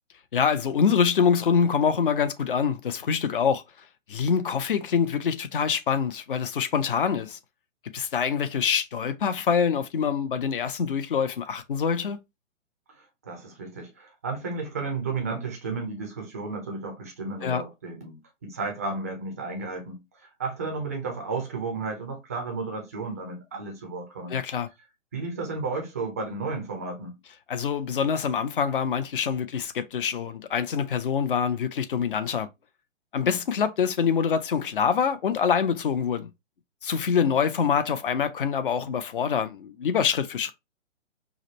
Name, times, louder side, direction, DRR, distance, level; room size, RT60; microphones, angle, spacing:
voice 1, 0.3-3.6 4.1-7.4 7.9-12.2 17.4-17.6 24.3-24.7 27.5-32.5 33.1-36.3 36.8-40.5, left 7 dB, 45° left, 0.6 m, -25 dB
voice 2, 13.2-24.4 25.1-27.2, right 3 dB, 15° right, 0.4 m, -33 dB
4.9 x 2.0 x 2.9 m
figure-of-eight pair, 130°, 38 cm